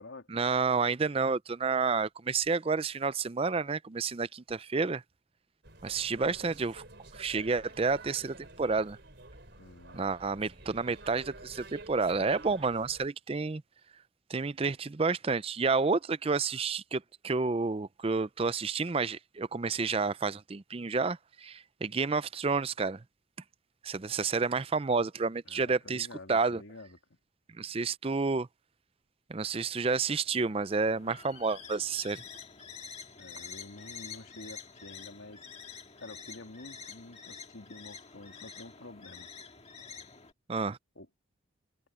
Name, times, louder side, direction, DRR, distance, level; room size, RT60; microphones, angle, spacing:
voice 1, 0.3-5.0 5.8-6.8 7.1-9.0 9.9-13.6 14.3-23.0 23.8-26.6 27.6-28.5 29.3-32.2 40.5-40.8, right 4 dB, 30° right, 0.4 m, -30 dB
sound 1, 5.6-13.1, right 2 dB, 55° right, 4.6 m, -50 dB
voice 2, 9.6-10.0 25.5-27.0 33.2-39.3 41.0-41.1, left 2 dB, 75° left, 2.6 m, -49 dB
sound 2, 30.3-40.3, left 6 dB, 30° left, 1.8 m, -48 dB
head